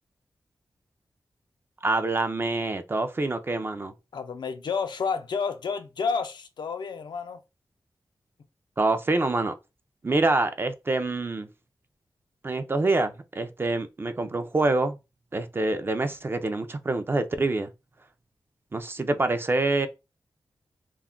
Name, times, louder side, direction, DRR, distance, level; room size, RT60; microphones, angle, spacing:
voice 1, 1.8-3.9 8.8-9.5 10.0-11.5 12.4-15.0 15.3-17.7 18.7-19.9, right 2 dB, 30° right, 0.3 m, -26 dB
voice 2, 4.1-7.4, left 5 dB, 70° left, 0.4 m, -30 dB
2.3 x 2.1 x 3.5 m
wide cardioid pair, 110°, 8 cm